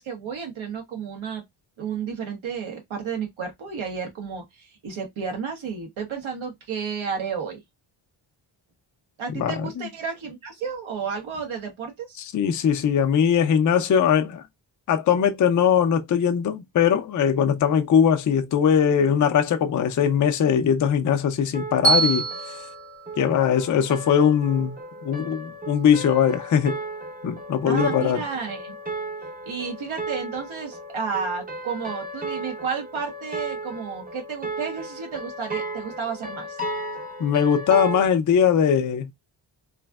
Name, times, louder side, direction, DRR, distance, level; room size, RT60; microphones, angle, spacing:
voice 1, 0.0-1.4 1.8-7.6 9.2-12.2 27.7-28.8 29.4-36.6, right 6 dB, 85° right, 1.3 m, -32 dB
voice 2, 9.4-9.9 12.2-14.4 14.9-22.3 23.2-24.8 25.0-26.8 27.2-28.2 37.2-39.1, left 8 dB, 40° left, 0.4 m, -20 dB
sound 1, 21.5-38.1, right 2 dB, 20° right, 0.6 m, -35 dB
Bell, 21.8-24.0, right 4 dB, 55° right, 1.3 m, -26 dB
3.1 x 2.5 x 2.3 m
wide cardioid pair, 125°, 46 cm